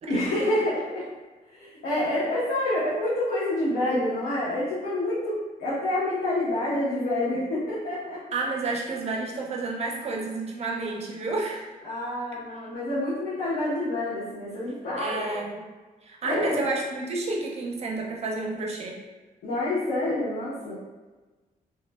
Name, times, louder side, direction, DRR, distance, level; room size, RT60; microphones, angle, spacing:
voice 1, 0.1-1.1 1.5-8.2 11.8-15.4 16.2-16.7 19.4-20.7, left 1 dB, 80° left, -11 dB, 0.8 m, -27 dB
voice 2, 8.3-11.7 15.0-15.6 16.0-19.0, right 3 dB, 45° right, -1 dB, 0.5 m, -30 dB
3.0 x 2.1 x 2.2 m, 1.3 s
cardioid pair, 130°, 16 cm